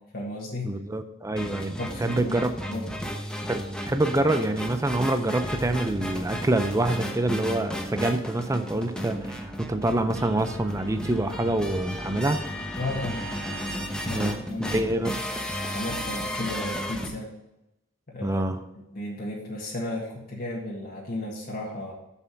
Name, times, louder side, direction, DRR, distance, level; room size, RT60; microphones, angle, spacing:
voice 1, 0.1-0.7 1.5-2.4 2.7-3.0 12.8-13.3 14.0-14.8 15.7-17.3 18.1-18.4 18.7-21.9, left 2 dB, 50° left, -3 dB, 1.6 m, -34 dB
voice 2, 0.6-2.5 3.4-12.4 14.1-14.4 14.7-15.2 18.2-18.6, right 2 dB, 15° right, 8 dB, 0.5 m, -26 dB
sound 1, 1.4-17.1, equal, 5° left, 0.9 m, -34 dB
7.1 x 6.9 x 5.2 m, 0.92 s
head